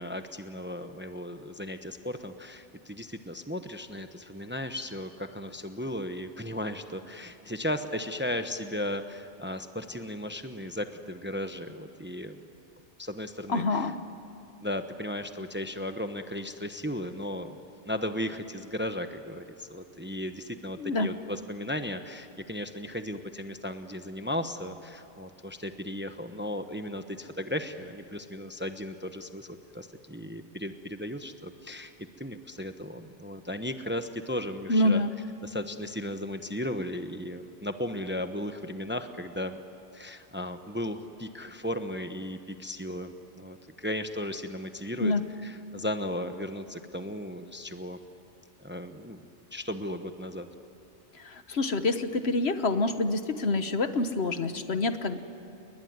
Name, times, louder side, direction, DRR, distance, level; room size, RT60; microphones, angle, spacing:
voice 1, 0.0-12.4 13.0-13.9 14.6-31.9 32.2-35.0 35.4-39.6 39.9-45.1 45.4-48.0 48.6-50.5, left 1 dB, 10° right, 8 dB, 0.9 m, -36 dB
voice 2, 13.5-14.0 20.8-21.1 34.7-35.1 45.0-45.2 51.2-55.2, left 2 dB, 60° left, 9 dB, 1.4 m, -27 dB
30.0 x 20.5 x 9.6 m, 2.7 s
omnidirectional pair, 1.2 m